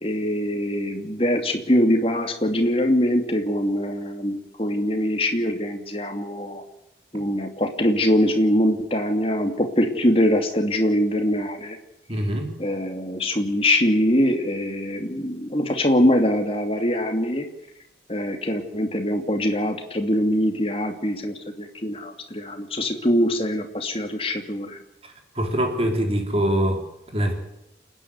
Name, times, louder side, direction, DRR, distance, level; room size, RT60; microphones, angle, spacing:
voice 1, 0.0-6.6 7.1-11.8 12.6-17.5 18.1-24.8, equal, 30° left, 5 dB, 2.7 m, -23 dB
voice 2, 12.1-12.5 25.4-26.8 27.1-27.3, right 1 dB, 35° right, 3 dB, 3.8 m, -23 dB
28.5 x 10.5 x 9.7 m, 0.85 s
head